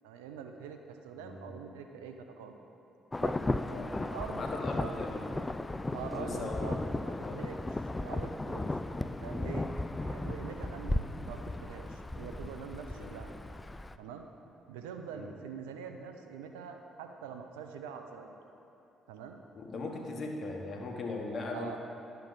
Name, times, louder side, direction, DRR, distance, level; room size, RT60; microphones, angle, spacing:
voice 1, 0.0-2.6 3.2-3.4 4.0-4.9 5.9-6.8 7.0-9.7 10.0-13.3 14.0-14.3 14.7-18.4 19.1-19.4 21.5-21.8, right 7 dB, 90° right, 5 dB, 0.5 m, -44 dB
voice 2, 1.2-1.6 3.7-4.0 4.4-5.2 6.1-6.8 7.2-7.4 8.6-8.8 10.9-11.0 13.0-13.2 15.1-15.3 19.6-21.8, left 3 dB, 50° left, 0 dB, 1.3 m, -39 dB
Insect / Thunder / Rain, 3.1-14.0, left 2 dB, 20° left, 0.3 m, -35 dB
11.0 x 6.7 x 4.0 m, 2.9 s
hypercardioid pair, 55°, 0 cm